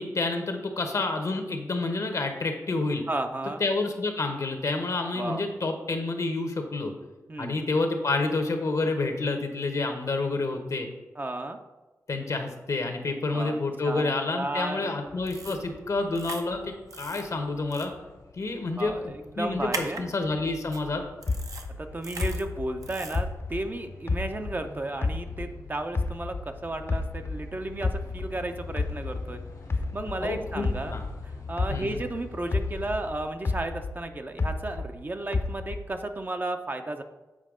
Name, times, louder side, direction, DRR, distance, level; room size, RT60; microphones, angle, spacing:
voice 1, 0.0-3.0 3.6-6.9 7.4-10.9 12.1-17.9 18.4-19.0 19.4-21.0 30.2-31.0 31.7-32.0, left 3 dB, 60° left, 5 dB, 1.0 m, -29 dB
voice 2, 3.1-3.6 5.1-5.4 7.3-7.6 11.2-11.6 13.3-14.9 18.8-20.1 21.8-29.4 29.9-31.0 31.5-37.0, right 2 dB, 30° right, 6 dB, 0.6 m, -33 dB
sound 1, 15.1-33.3, left 4 dB, 80° left, 1.7 m, -45 dB
sound 2, 15.3-15.6 16.2-16.4 16.9-17.2 17.7-17.9 19.7-20.0 20.7-20.8 21.2-21.7 22.0-22.4 22.8-23.2, right 3 dB, 70° right, 0.7 m, -38 dB
sound 3, 21.3-24.7 25.0-27.5 27.8-32.2 32.5-35.0 35.3-36.0, left 3 dB, 40° left, 0.5 m, -31 dB
7.5 x 4.6 x 3.7 m, 1.2 s
cardioid pair, 65°, 6 cm